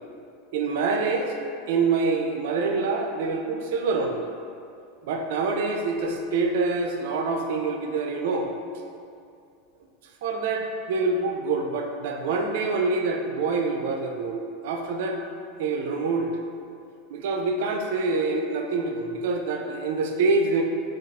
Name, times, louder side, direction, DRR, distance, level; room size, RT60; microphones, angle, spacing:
voice 1, 0.5-1.3 1.7-4.3 5.0-8.5 10.2-15.2 15.6-16.3 17.1-20.6, right 3 dB, 75° right, 3 dB, 0.3 m, -26 dB
2.4 x 2.3 x 3.2 m, 2.4 s
supercardioid pair, 125°, 0 cm